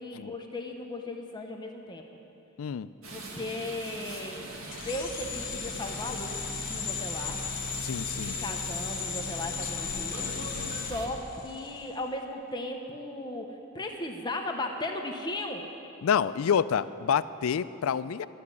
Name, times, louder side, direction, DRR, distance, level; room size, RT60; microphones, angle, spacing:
voice 1, 0.0-2.0 3.1-4.4 4.8-7.4 8.3-10.3 10.9-13.5 13.7-15.6, left 2 dB, 20° left, 3 dB, 0.7 m, -36 dB
sound 1, 3.0-11.1, right 2 dB, 85° right, 1.6 m, -42 dB
sound 2, 4.7-11.8, left 6 dB, 40° left, 1.1 m, -36 dB
voice 2, 7.8-8.4 10.2-10.8 16.0-18.3, left 7 dB, 80° left, 15 dB, 0.4 m, -28 dB
13.0 x 7.1 x 9.8 m, 2.9 s
head